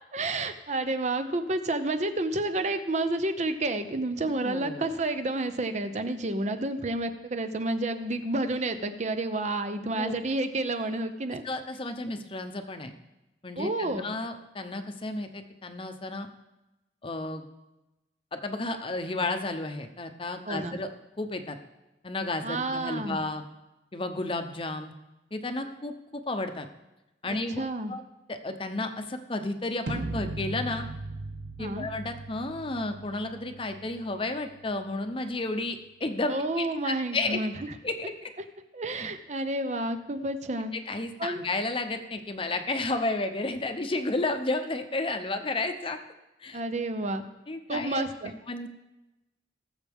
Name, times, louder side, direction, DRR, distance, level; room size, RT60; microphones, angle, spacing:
voice 1, 0.1-11.4 13.6-14.1 20.5-20.8 22.4-23.2 27.6-27.9 31.6-31.9 36.3-37.5 38.7-40.7 41.2-41.5 46.5-47.2 47.7-48.3, right 2 dB, 40° right, 9 dB, 0.8 m, -30 dB
voice 2, 4.4-4.9 10.0-10.1 11.4-12.9 13.4-16.3 17.0-17.4 18.3-20.9 21.2-21.6 22.0-23.4 23.9-24.9 25.3-26.7 27.2-27.6 27.9-28.0 28.3-30.9 31.6-37.4 37.8-38.3 40.9-46.0 46.4-46.6 47.5-48.0 48.5-48.7, left 2 dB, 30° left, 7 dB, 0.8 m, -32 dB
sound 1, 29.9-35.8, right 2 dB, 75° right, 0.8 m, -39 dB
19.0 x 7.2 x 3.6 m, 1.0 s
head